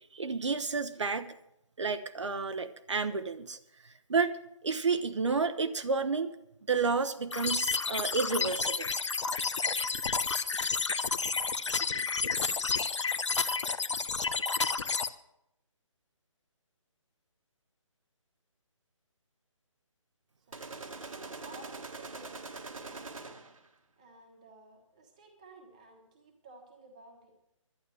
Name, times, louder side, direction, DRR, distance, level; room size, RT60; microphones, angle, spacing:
voice 1, 0.1-1.3 1.8-3.6 3.8-4.4 4.6-6.3 6.7-8.9, right 4 dB, 60° right, 9 dB, 0.8 m, -30 dB
sound 1, 7.3-15.1, left 4 dB, 60° left, 0.9 m, -30 dB
sound 2, 20.5-23.7, right 3 dB, 80° right, 1.7 m, -43 dB
voice 2, 21.1-23.1 24.0-27.3, right 2 dB, 15° right, 2 dB, 1.2 m, -54 dB
11.5 x 9.6 x 7.6 m, 0.82 s
hypercardioid pair, 180°, 17 cm